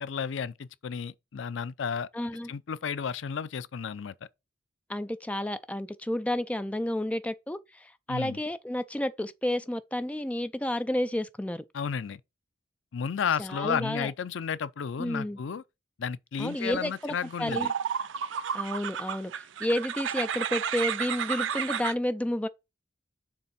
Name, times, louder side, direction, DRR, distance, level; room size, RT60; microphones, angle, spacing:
voice 1, 0.0-2.1 2.5-4.1 8.1-8.4 11.7-12.2 12.9-15.6 16.0-17.7, left 6 dB, 85° left, 0.4 m, -32 dB
voice 2, 2.1-2.5 4.9-11.6 13.4-14.1 15.0-15.4 16.4-17.7 18.5-22.5, left 1 dB, 5° left, 0.4 m, -31 dB
sound 1, 16.9-17.0 17.5-21.9, right 8 dB, 80° right, 0.5 m, -31 dB
6.7 x 3.5 x 5.6 m
head